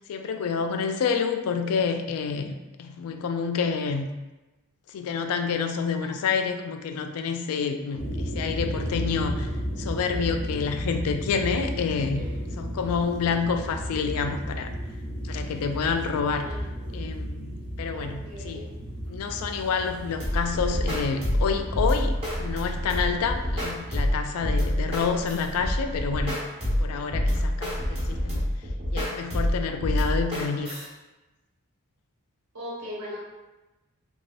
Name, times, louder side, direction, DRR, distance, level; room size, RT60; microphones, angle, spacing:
voice 1, 0.1-2.5 2.8-4.1 4.9-9.5 9.8-12.2 12.6-14.7 15.2-16.5 16.9-18.7 19.1-26.4 26.8-28.4 28.9-30.7, left 5 dB, 80° left, 7 dB, 0.3 m, -28 dB
voice 2, 6.0-6.3 11.8-12.4 16.3-17.0 17.9-18.8 32.5-33.2, equal, 90° right, -6 dB, 1.2 m, -40 dB
sound 1, 8.0-23.9, equal, 5° left, 0.6 m, -34 dB
sound 2, 20.2-30.9, equal, 25° right, 1.0 m, -27 dB
3.1 x 2.7 x 2.5 m, 1.1 s
head